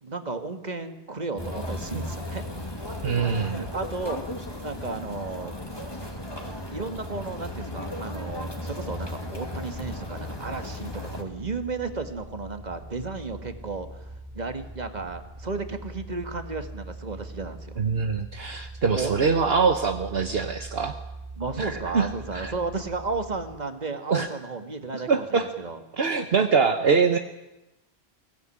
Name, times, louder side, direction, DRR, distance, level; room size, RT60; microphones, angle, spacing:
voice 1, 0.0-2.4 3.4-4.2 4.6-5.5 6.7-17.8 18.9-19.1 21.4-25.8 26.8-27.0, right 3 dB, 40° right, 7 dB, 1.9 m, -33 dB
sound 1, 1.4-11.2, left 1 dB, 20° left, 2.6 m, -35 dB
voice 2, 3.0-3.6 17.8-21.0 21.6-22.1 22.3-22.5 24.1-24.3 24.9-25.5 25.9-27.2, right 5 dB, 65° right, 6 dB, 1.3 m, -24 dB
sound 2, 11.3-23.6, right 2 dB, 15° right, 3.1 m, -42 dB
23.0 x 17.0 x 10.0 m, 0.97 s
omnidirectional pair, 1.1 m